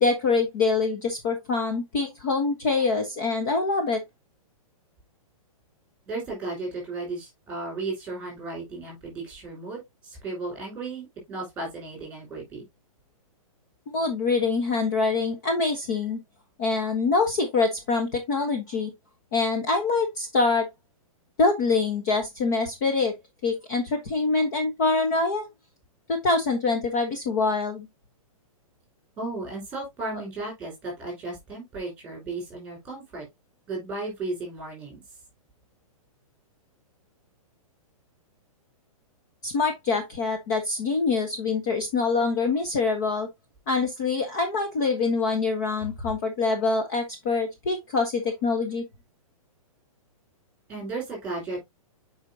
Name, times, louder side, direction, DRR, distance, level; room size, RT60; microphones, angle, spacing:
voice 1, 0.0-4.0 13.9-16.2 16.6-18.9 19.3-20.7 21.4-23.1 23.4-25.5 26.1-27.9 39.4-43.3 43.7-48.8, left 4 dB, 30° left, 1.1 m, -25 dB
voice 2, 6.1-12.7 29.2-33.3 33.7-35.0 50.7-51.6, right 3 dB, 5° right, 4.7 m, -35 dB
8.0 x 5.0 x 2.8 m
hypercardioid pair, 175°, 18 cm